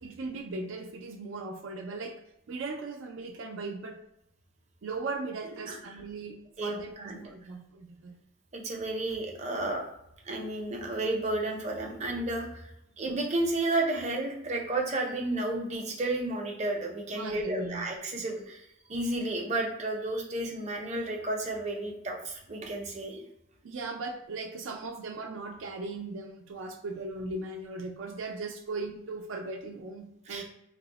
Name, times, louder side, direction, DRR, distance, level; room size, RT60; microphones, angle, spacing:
voice 1, 0.0-2.2 2.5-4.0 4.8-8.1 17.1-18.2 23.6-30.4, right 3 dB, 80° right, 2 dB, 0.4 m, -38 dB
voice 2, 6.6-7.3 8.5-9.8 10.2-12.7 13.0-18.6 18.9-23.2 30.3-30.4, right 2 dB, 35° right, 1 dB, 0.6 m, -32 dB
3.0 x 2.0 x 3.9 m, 0.82 s
head